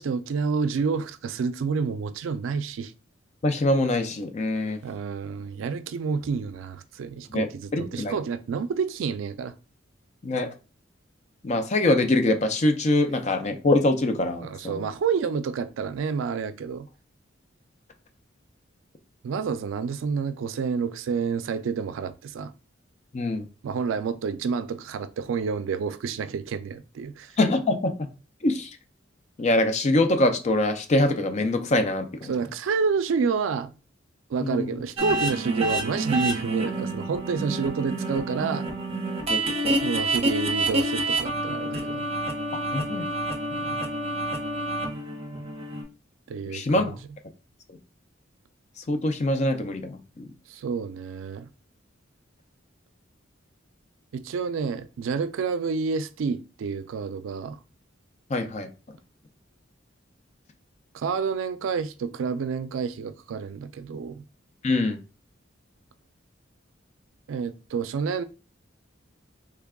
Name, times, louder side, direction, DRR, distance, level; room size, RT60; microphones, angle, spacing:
voice 1, 0.0-2.9 4.8-9.5 14.4-16.9 19.2-22.5 23.6-27.3 32.3-33.7 34.3-38.7 39.8-42.1 46.3-47.0 50.5-51.5 54.1-57.6 60.9-64.3 67.3-68.2, right 5 dB, 80° right, 0.3 m, -29 dB
voice 2, 3.4-4.8 7.3-8.1 10.2-10.5 11.4-14.9 23.1-23.5 27.4-27.9 28.4-28.7 29.4-32.3 34.4-34.8 39.3-39.8 42.7-43.1 43.7-43.8 46.5-47.0 48.9-50.3 58.3-58.7 64.6-65.0, left 2 dB, 35° left, 0.5 m, -24 dB
sound 1, 35.0-45.8, right 1 dB, 30° right, 0.7 m, -28 dB
3.3 x 2.2 x 3.5 m
head